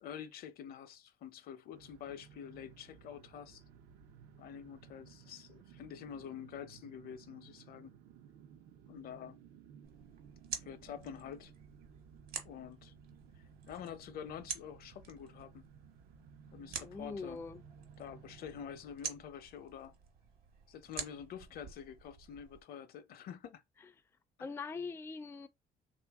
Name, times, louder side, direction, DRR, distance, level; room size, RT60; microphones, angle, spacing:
voice 1, 0.0-3.6 4.4-7.9 8.9-9.4 10.6-11.5 12.4-12.9 13.7-15.7 16.5-17.4 18.0-19.9 20.7-23.6 24.4-24.5, left 8 dB, 65° left, 0.6 m, -47 dB
sound 1, 1.7-18.8, right 7 dB, 85° right, 0.7 m, -58 dB
sound 2, 9.8-22.6, right 6 dB, 65° right, 1.2 m, -48 dB
voice 2, 16.8-17.6 24.4-25.5, left 4 dB, 15° left, 0.3 m, -42 dB
3.2 x 2.5 x 3.4 m
cardioid pair, 110°, 17 cm